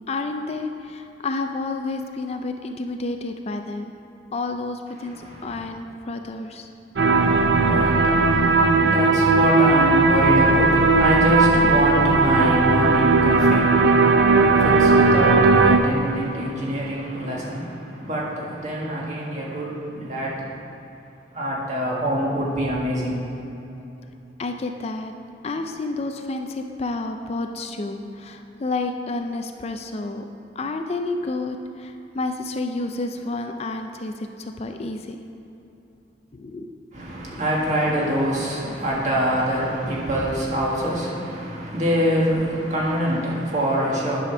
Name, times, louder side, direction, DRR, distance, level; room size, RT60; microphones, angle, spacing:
voice 1, 0.1-3.9 4.3-6.7 17.2-17.4 17.9-18.1 24.4-25.1 25.4-30.2 30.6-35.2 36.3-36.7 37.2-37.4, left 2 dB, 35° left, 5 dB, 0.4 m, -30 dB
voice 2, 5.0-5.6 7.1-20.6 21.3-23.2 36.9-44.2, equal, 40° right, -4 dB, 1.8 m, -25 dB
sound 1, 7.0-15.8, right 3 dB, 65° right, 0.6 m, -17 dB
10.0 x 5.0 x 6.1 m, 3.0 s
head